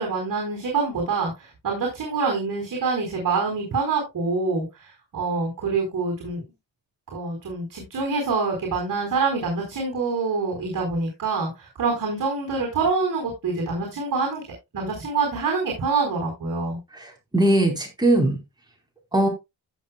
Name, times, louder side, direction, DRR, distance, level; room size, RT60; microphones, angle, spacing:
voice 1, 0.0-6.4 7.1-14.4 14.7-16.8, right 4 dB, 55° right, 1 dB, 4.5 m, -26 dB
voice 2, 16.9-18.4 19.1-19.3, right 1 dB, 10° right, 1 dB, 4.3 m, -20 dB
15.0 x 7.5 x 2.3 m, 0.22 s
cardioid pair, 130°, 39 cm